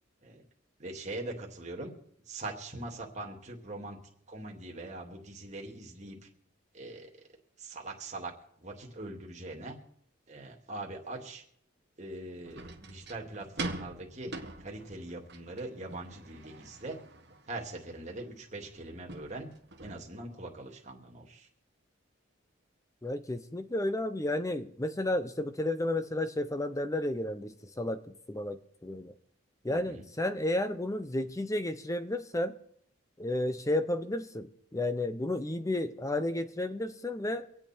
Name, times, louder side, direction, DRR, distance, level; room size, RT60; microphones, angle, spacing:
voice 1, 0.8-1.9 2.3-4.0 4.3-6.3 6.7-7.1 7.6-8.3 8.6-9.8 10.3-11.4 12.0-14.3 14.6-17.0 17.5-19.5 19.8-21.5 29.7-30.0, right 2 dB, 35° right, 0 dB, 2.4 m, -42 dB
sound 1, 12.4-19.9, right 2 dB, 55° right, 1.4 m, -44 dB
voice 2, 23.0-28.0 28.3-29.1 29.6-32.5 33.2-34.5 34.7-37.5, left 1 dB, 15° left, 10 dB, 0.6 m, -32 dB
25.0 x 8.8 x 4.4 m, 0.68 s
head